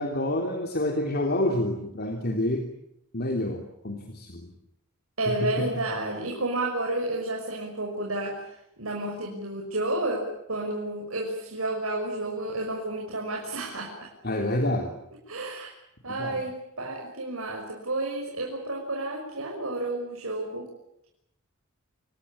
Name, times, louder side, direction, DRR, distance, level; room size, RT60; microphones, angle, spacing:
voice 1, 0.0-2.6 3.1-4.5 5.3-5.7 14.2-14.9 16.1-16.4, left 1 dB, 50° left, 4 dB, 3.3 m, -28 dB
voice 2, 5.2-14.1 15.3-15.7 16.0-20.7, right 2 dB, 75° right, 0 dB, 6.3 m, -31 dB
28.0 x 21.5 x 8.8 m, 0.79 s
head